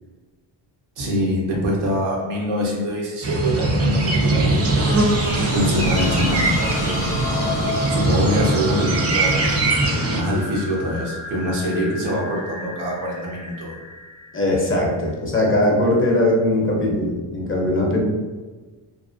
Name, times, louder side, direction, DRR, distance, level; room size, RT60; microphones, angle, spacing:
voice 1, 1.0-4.7 5.5-7.0 7.9-9.6 10.0-13.8, equal, 85° right, -3 dB, 0.9 m, -24 dB
sound 1, 3.2-10.2, right 2 dB, 30° right, 0.5 m, -21 dB
sound 2, 4.5-15.1, left 2 dB, 90° left, 0.6 m, -32 dB
voice 2, 14.3-18.0, left 1 dB, 25° left, -1 dB, 0.6 m, -20 dB
2.6 x 2.1 x 2.4 m, 1.3 s
cardioid pair, 80°, 48 cm